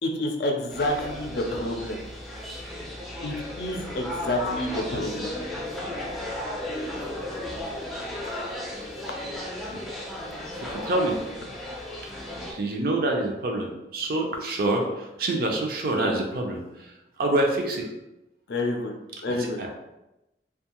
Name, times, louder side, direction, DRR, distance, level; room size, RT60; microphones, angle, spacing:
voice 1, 0.0-2.0 3.2-5.3 8.2-8.3 18.5-18.9 19.2-19.6, left 1 dB, 65° left, 2 dB, 0.4 m, -29 dB
sound 1, 0.7-12.5, left 1 dB, ahead, 0.4 m, -34 dB
voice 2, 10.7-11.2 12.5-17.9 19.3-19.7, right 2 dB, 55° right, 1 dB, 0.5 m, -27 dB
2.5 x 2.3 x 2.9 m, 0.95 s
head